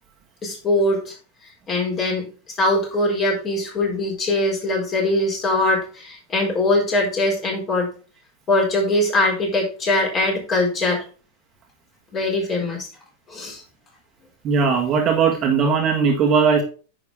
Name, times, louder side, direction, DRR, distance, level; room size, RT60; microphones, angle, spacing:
voice 1, 0.4-1.1 1.7-2.3 2.6-7.9 8.5-11.0 12.1-12.9 13.3-13.6, left 2 dB, 30° left, -1 dB, 4.4 m, -21 dB
voice 2, 14.4-16.6, right 5 dB, 30° right, 1 dB, 1.7 m, -18 dB
9.6 x 6.3 x 3.5 m, 0.37 s
figure-of-eight pair, 90°, 0 cm